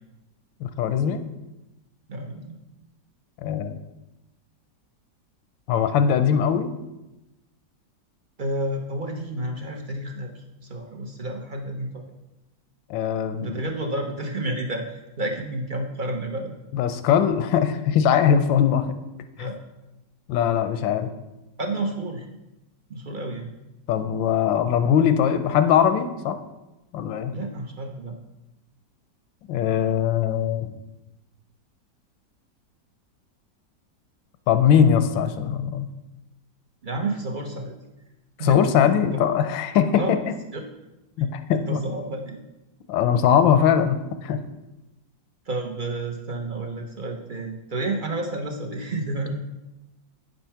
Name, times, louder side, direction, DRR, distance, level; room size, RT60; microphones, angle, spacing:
voice 1, 0.6-1.2 3.4-3.8 5.7-6.7 12.9-13.6 16.7-18.9 19.4-19.5 20.3-21.1 23.9-26.4 26.9-27.3 29.5-30.7 34.5-35.9 38.4-40.3 41.2-41.8 42.9-44.4, left 8 dB, 90° left, 9 dB, 1.4 m, -21 dB
voice 2, 2.1-2.6 8.4-12.1 13.4-16.5 19.4-19.5 21.6-22.3 22.9-23.5 27.3-28.1 36.8-37.7 38.4-38.6 39.0-39.2 39.9-40.2 40.5-40.6 41.5-42.4 45.5-49.3, right 2 dB, 50° right, 2 dB, 0.5 m, -30 dB
9.0 x 5.4 x 5.7 m, 0.99 s
omnidirectional pair, 2.0 m